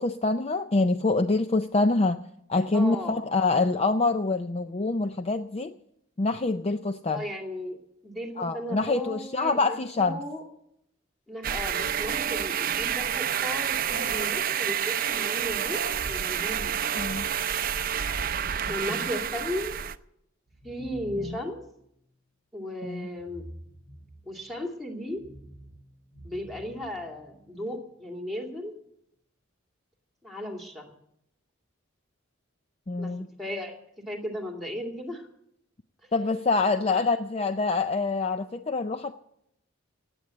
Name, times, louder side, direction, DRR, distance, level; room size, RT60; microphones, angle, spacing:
voice 1, 0.0-2.2 2.5-5.7 6.2-7.2 8.4-10.2 17.0-17.3 18.9-19.0 21.2-21.4 22.8-23.1 32.9-33.3 36.1-39.2, left 3 dB, 30° left, 9 dB, 0.5 m, -26 dB
voice 2, 2.7-3.2 7.1-7.8 8.0-10.4 11.3-17.0 18.7-19.8 20.6-21.6 22.5-23.5 24.2-25.2 26.2-28.7 30.2-30.9 33.0-33.1 33.4-33.7 34.1-35.3 36.8-37.1, left 1 dB, ahead, 1 dB, 2.4 m, -35 dB
sound 1, 11.4-20.0, right 9 dB, 45° right, 0.5 m, -29 dB
sound 2, 20.5-21.8 23.1-24.5 25.1-27.6, equal, 65° left, 7.6 m, -48 dB
18.0 x 8.7 x 7.7 m, 0.76 s
head